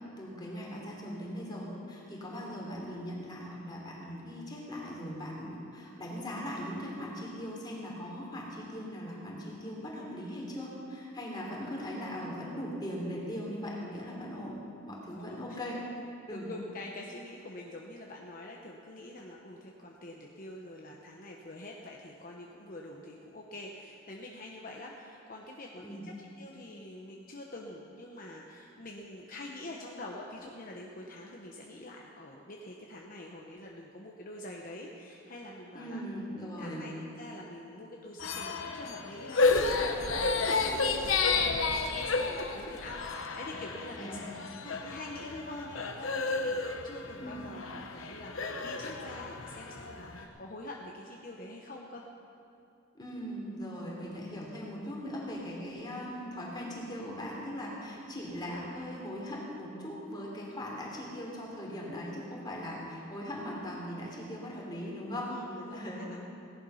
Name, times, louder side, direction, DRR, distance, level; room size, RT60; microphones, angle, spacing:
voice 1, 0.2-14.5 14.9-15.8 16.3-16.5 25.8-26.0 35.7-36.9 43.9-44.3 47.2-47.4 52.9-65.3 65.7-66.1, equal, 20° left, -3 dB, 3.2 m, -39 dB
voice 2, 15.2-15.6 16.3-36.0 36.6-44.3 44.6-52.0 65.3-66.2, left 1 dB, 45° left, -1 dB, 1.0 m, -45 dB
sound 1, 38.2-50.2, left 4 dB, 75° left, 1.1 m, -31 dB
17.5 x 11.0 x 5.7 m, 2.7 s
head